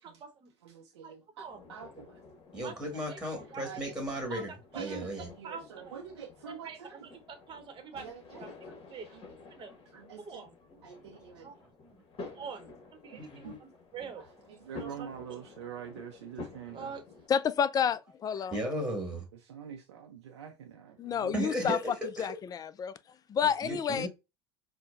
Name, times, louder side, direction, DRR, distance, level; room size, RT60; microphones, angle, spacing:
voice 1, 0.0-0.5 1.0-1.1 1.4-1.6 2.6-3.6 4.3-4.4 4.7-5.0 5.4-5.9 6.4-7.0 7.3-8.1 8.4-8.5 8.9-9.7 10.2-10.5 11.4-11.5 12.2-12.7 13.0-14.2 14.8-15.1 16.7-17.0, right 6 dB, 35° right, 0.9 m, -45 dB
voice 2, 0.6-2.2 3.6-4.0 4.2-7.1 7.9-8.7 9.1-9.3 9.9-10.5 10.8-11.6 12.2-12.5 13.1-13.6 14.2-17.0 19.3-21.4, right 8 dB, 85° right, 0.5 m, -46 dB
sound 1, 1.4-17.3, left 3 dB, 45° left, 1.1 m, -51 dB
voice 3, 2.5-5.3 13.2-13.6 18.5-19.3 21.3-22.4 23.6-24.1, right 1 dB, 5° right, 1.6 m, -35 dB
voice 4, 17.3-18.6 21.0-21.8 22.2-22.9 23.3-24.1, left 7 dB, 25° left, 0.3 m, -29 dB
4.4 x 2.1 x 2.4 m
hypercardioid pair, 75°, 14 cm